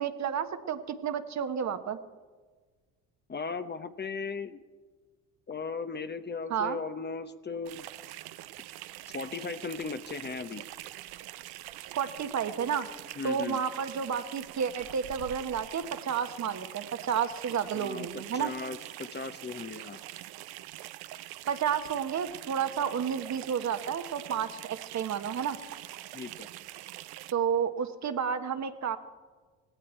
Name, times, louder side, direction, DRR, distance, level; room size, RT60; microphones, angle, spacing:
voice 1, 0.0-2.0 6.5-6.8 12.0-12.9 13.2-18.5 21.5-25.6 27.3-29.0, right 7 dB, 45° right, 9 dB, 1.3 m, -31 dB
voice 2, 3.3-4.6 5.5-7.9 9.1-10.6 13.2-13.6 17.7-20.0 26.1-26.5, left 4 dB, 25° left, 10 dB, 0.9 m, -37 dB
sound 1, 7.7-27.3, right 15 dB, 65° right, 0.8 m, -44 dB
17.5 x 17.0 x 4.5 m, 1.4 s
hypercardioid pair, 70°, 39 cm